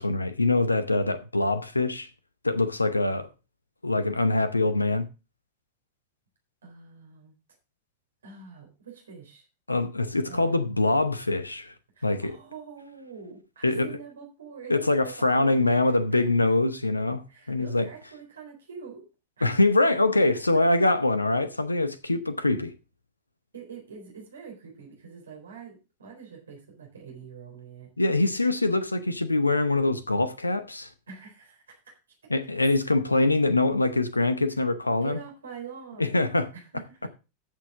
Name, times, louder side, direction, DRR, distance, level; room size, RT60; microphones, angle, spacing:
voice 1, 0.0-2.1 2.4-3.3 3.8-5.1 9.7-11.7 12.0-12.4 13.6-13.9 14.7-17.2 17.5-17.9 19.4-22.7 28.0-30.9 32.3-35.2 36.0-36.5, left 2 dB, 80° left, 0.8 m, -24 dB
voice 2, 6.6-7.3 8.2-9.5 10.2-10.6 11.9-16.2 17.3-19.1 19.4-19.5 23.5-27.9 31.1-32.0 35.0-36.2 36.5-37.1, right 6 dB, 70° right, 4.0 m, -45 dB
14.5 x 6.7 x 3.6 m
figure-of-eight pair, 90°, 0 cm